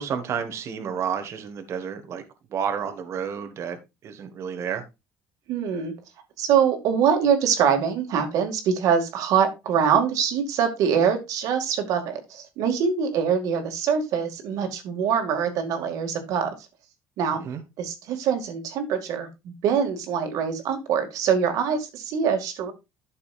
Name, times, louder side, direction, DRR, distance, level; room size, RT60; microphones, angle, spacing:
voice 1, 0.0-2.2 2.5-4.8 17.3-17.6, right 7 dB, 50° right, 7 dB, 1.6 m, -31 dB
voice 2, 5.5-5.9 6.4-16.5 17.2-17.4 17.8-22.7, right 7 dB, 70° right, 6 dB, 2.2 m, -24 dB
12.5 x 6.6 x 2.5 m, 0.24 s
cardioid pair, 135°, 6 cm